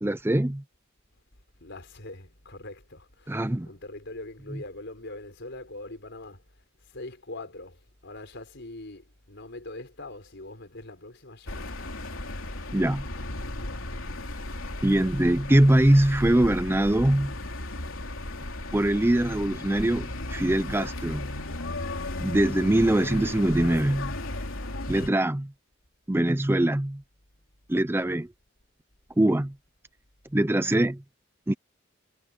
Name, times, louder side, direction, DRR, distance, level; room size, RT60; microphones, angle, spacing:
voice 1, 0.0-0.6 3.3-3.7 12.7-13.1 14.8-17.4 18.7-21.3 22.2-24.2 24.9-25.5 26.1-27.0 27.7-28.3 29.2-29.5 30.3-31.0 31.5-31.6, right 1 dB, 10° right, 0.5 m, -23 dB
voice 2, 1.6-6.4 6.8-12.1, left 2 dB, 60° left, 5.3 m, -42 dB
sound 1, 11.5-25.1, left 2 dB, 85° left, 3.2 m, -35 dB
head